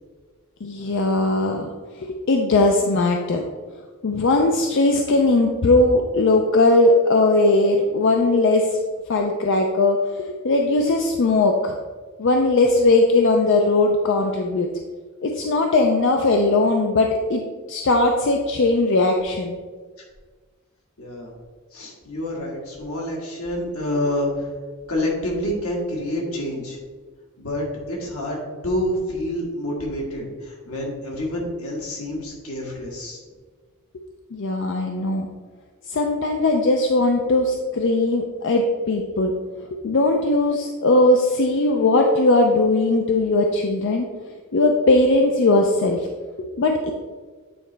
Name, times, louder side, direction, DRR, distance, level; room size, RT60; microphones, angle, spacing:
voice 1, 0.6-1.7 2.0-3.4 4.0-8.8 9.1-11.7 12.2-14.7 15.2-17.4 17.7-19.6 34.3-35.3 35.9-39.3 39.8-44.1 44.5-46.1 46.6-46.9, left 2 dB, 60° left, 3 dB, 0.5 m, -19 dB
voice 2, 21.0-21.3 21.7-24.5 24.9-26.8 27.4-33.2, left 1 dB, 85° left, -2 dB, 1.8 m, -28 dB
8.6 x 4.0 x 3.3 m, 1.4 s
head